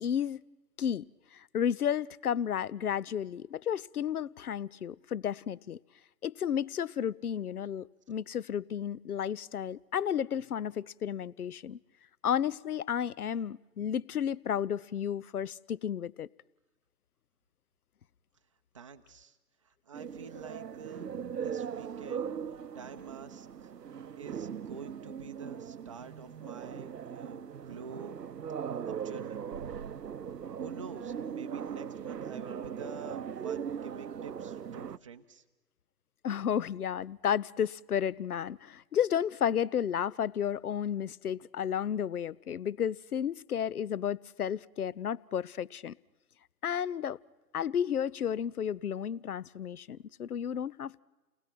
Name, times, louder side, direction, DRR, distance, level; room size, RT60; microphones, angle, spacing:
voice 1, 0.0-0.4 0.8-1.0 1.3-5.8 6.2-11.8 12.2-16.3 36.2-45.9 46.6-47.2 47.5-51.0, left 9 dB, 65° left, 0.7 m, -32 dB
voice 2, 18.7-19.4 19.6-22.3 22.7-23.7 24.2-28.2 28.7-29.4 30.6-35.4, right 5 dB, 20° right, 0.7 m, -48 dB
sound 1, 19.9-35.0, right 8 dB, 75° right, 0.8 m, -39 dB
30.0 x 19.5 x 6.0 m
figure-of-eight pair, 145°, 48 cm